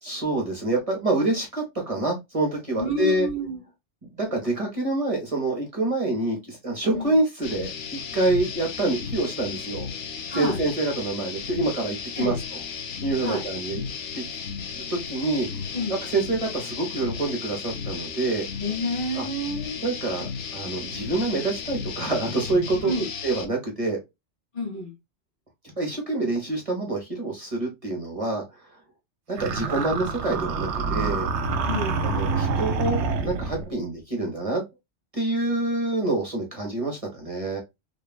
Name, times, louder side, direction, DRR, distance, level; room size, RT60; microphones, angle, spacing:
voice 1, 0.0-3.3 4.1-9.9 10.3-12.6 13.0-13.9 14.1-14.2 14.8-15.6 16.0-18.5 19.1-19.3 19.8-24.0 25.8-28.4 29.3-31.3 32.0-34.6 35.1-37.6, right 2 dB, 35° right, 0.9 m, -27 dB
voice 2, 2.8-3.6 6.9-7.2 10.3-10.6 12.2-12.4 13.2-13.4 15.7-16.0 18.6-19.7 22.8-23.1 24.5-24.9 31.7-32.0, equal, 45° left, 1.1 m, -29 dB
sound 1, 7.4-23.5, left 6 dB, 85° left, 0.9 m, -34 dB
sound 2, 29.4-33.7, right 4 dB, 75° right, 0.9 m, -27 dB
3.1 x 2.3 x 2.2 m
omnidirectional pair, 1.2 m